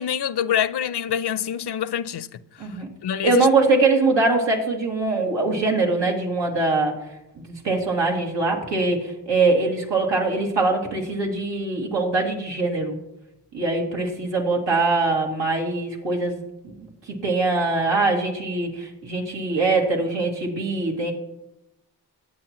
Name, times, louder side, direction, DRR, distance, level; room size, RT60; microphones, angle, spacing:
voice 1, 0.0-2.3 3.0-3.5, left 9 dB, 70° left, 0.7 m, -25 dB
voice 2, 3.2-6.9 7.4-13.0 13.5-21.1, right 3 dB, 85° right, 2.5 m, -22 dB
19.5 x 8.1 x 3.0 m
cardioid pair, 55°, 42 cm